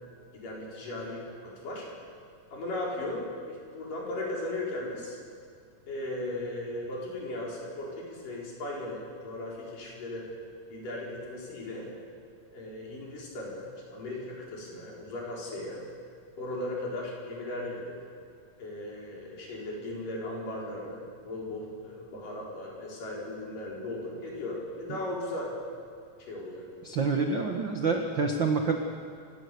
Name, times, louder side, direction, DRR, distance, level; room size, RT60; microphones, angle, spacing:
voice 1, 0.3-1.9 2.5-5.2 5.9-10.3 10.7-11.9 12.5-15.8 16.4-18.0 18.6-25.5 26.3-26.7, left 1 dB, 65° left, -3 dB, 6.0 m, -37 dB
voice 2, 26.8-28.8, right 4 dB, 80° right, 3 dB, 1.0 m, -27 dB
27.5 x 17.5 x 6.9 m, 2.2 s
omnidirectional pair, 4.2 m